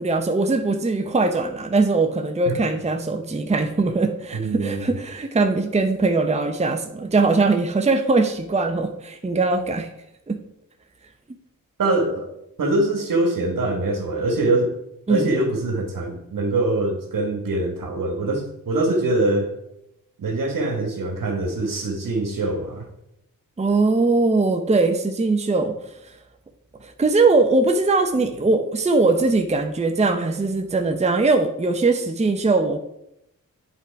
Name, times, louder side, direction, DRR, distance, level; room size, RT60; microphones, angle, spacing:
voice 1, 0.0-9.9 10.3-10.4 15.1-15.3 23.6-25.8 26.1-26.2 26.8-32.8, right 3 dB, 20° right, 6 dB, 0.7 m, -21 dB
voice 2, 4.3-4.9 11.8-12.3 12.6-14.7 15.1-19.5 20.2-22.9, right 2 dB, 70° right, 3 dB, 1.6 m, -23 dB
8.2 x 3.9 x 4.6 m, 0.81 s
cardioid pair, 55°, 34 cm